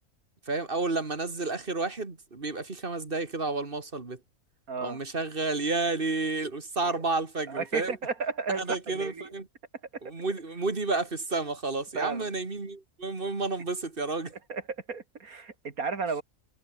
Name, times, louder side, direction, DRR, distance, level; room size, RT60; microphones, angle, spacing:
voice 1, 0.5-4.2 4.8-7.9 8.6-9.5 10.0-14.3, right 3 dB, 40° right, 2.5 m, -31 dB
voice 2, 4.7-5.0 6.8-7.0 7.5-9.3 11.9-12.3 14.5-14.6 14.9-16.2, right 4 dB, 85° right, 2.9 m, -33 dB
omnidirectional pair, 1.5 m